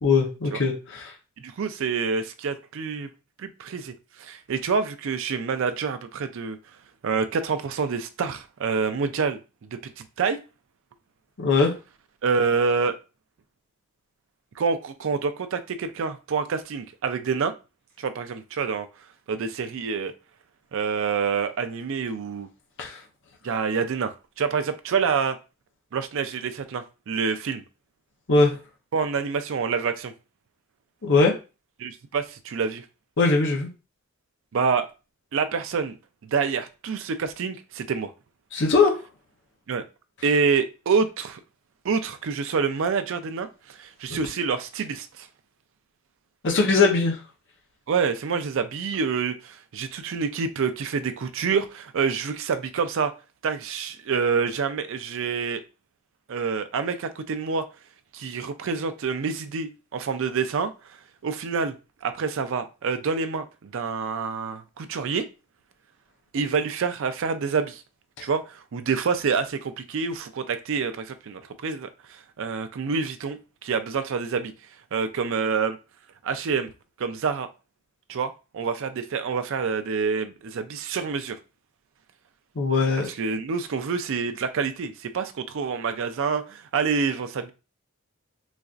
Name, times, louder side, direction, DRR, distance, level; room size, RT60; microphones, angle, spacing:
voice 1, 0.0-1.1 11.4-11.7 22.8-23.0 28.3-28.6 31.0-31.4 33.2-33.7 38.5-38.9 44.1-44.2 46.4-47.2 82.6-83.1, left 4 dB, 60° left, 0.7 m, -20 dB
voice 2, 1.4-3.1 3.4-3.9 4.2-6.6 7.0-9.4 9.7-10.4 12.2-13.0 14.6-17.5 18.0-18.9 19.3-20.1 20.7-22.5 23.4-25.4 25.9-27.6 28.9-30.1 31.8-32.8 34.5-34.9 35.3-36.0 36.3-38.1 39.7-39.8 40.2-41.4 41.8-45.3 47.9-53.1 53.4-55.6 56.3-57.7 58.1-60.7 61.2-61.8 62.0-65.3 66.3-67.8 68.2-71.9 72.4-74.5 74.9-75.8 76.2-76.7 77.0-77.5 78.1-81.4 83.2-87.5, right 5 dB, 65° right, 0.4 m, -27 dB
4.0 x 2.4 x 2.4 m
head